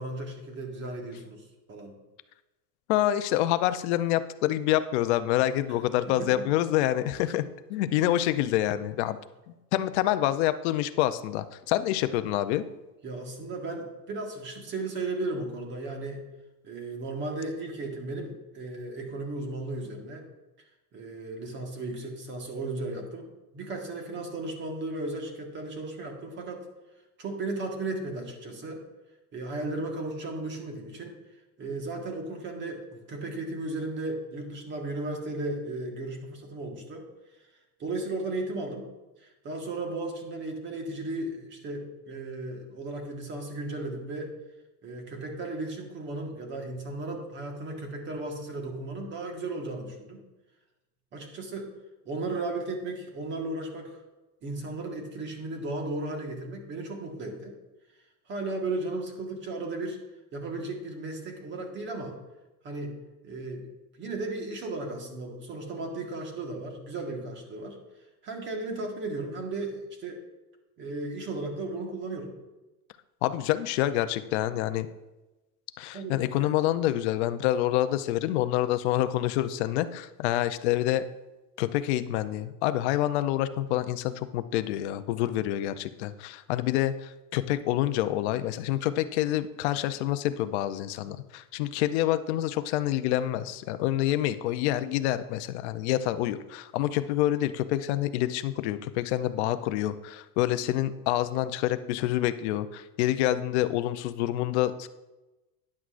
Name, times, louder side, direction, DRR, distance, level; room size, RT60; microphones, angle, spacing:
voice 1, 0.0-2.0 6.1-6.5 13.0-16.2 16.6-20.2 20.9-26.6 27.2-28.8 29.3-31.1 31.6-37.0 37.8-38.9 39.2-44.3 44.8-50.2 51.1-51.7 52.0-54.0 54.4-57.5 58.3-60.0 60.3-62.2 62.6-63.7 64.0-67.8 68.2-70.2 70.8-72.3 75.9-76.5, right 2 dB, 25° right, 2 dB, 1.5 m, -35 dB
voice 2, 2.9-7.4 7.7-9.2 9.7-12.6 73.2-74.9 75.8-81.0 81.6-104.9, left 13 dB, 50° left, 12 dB, 0.5 m, -27 dB
12.0 x 9.8 x 2.5 m, 1.1 s
supercardioid pair, 160°, 46 cm